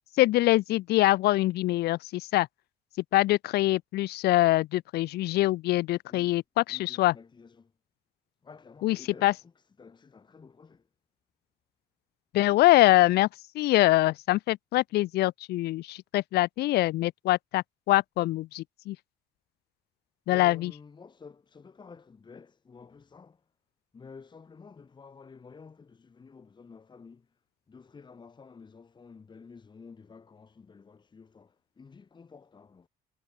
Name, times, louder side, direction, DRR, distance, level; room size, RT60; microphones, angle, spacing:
voice 1, 0.2-2.5 3.1-7.1 8.8-9.0 9.2-9.3 12.3-13.3 13.5-19.0 20.3-20.7, left 17 dB, 70° left, 0.6 m, -24 dB
voice 2, 6.1-6.4 6.7-7.7 8.4-10.9 20.3-23.5 23.9-27.4 27.7-32.9, left 5 dB, 25° left, 2.0 m, -51 dB
cardioid pair, 110°, 17 cm